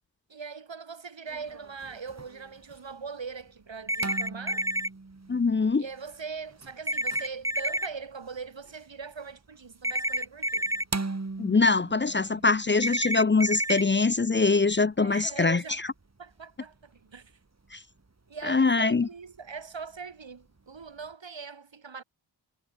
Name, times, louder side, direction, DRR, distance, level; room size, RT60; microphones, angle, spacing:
voice 1, 0.3-4.7 5.8-10.9 15.0-15.8 16.2-17.4 18.3-22.0, right 5 dB, 90° right, 6.1 m, -41 dB
sound 1, 1.3-21.1, right 3 dB, 35° right, 3.2 m, -44 dB
sound 2, 3.9-4.9 6.9-7.9 9.8-10.8 12.8-13.8, right 1 dB, 5° right, 0.9 m, -29 dB
voice 2, 5.3-5.8 11.4-15.6 17.7-17.8 18.4-19.1, left 4 dB, 25° left, 0.5 m, -23 dB
wide cardioid pair, 80°, 43 cm